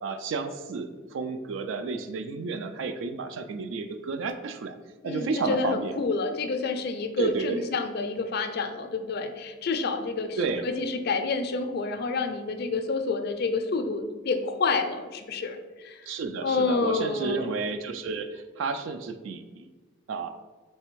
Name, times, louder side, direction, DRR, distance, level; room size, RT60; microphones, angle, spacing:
voice 1, 0.0-4.8 5.0-5.9 7.2-7.6 10.4-10.7 16.1-19.6 20.1-20.3, right 4 dB, 70° right, 8 dB, 0.3 m, -31 dB
voice 2, 5.0-16.0 16.4-17.6, left 4 dB, 55° left, 7 dB, 0.4 m, -29 dB
3.4 x 3.3 x 4.5 m, 1.3 s
head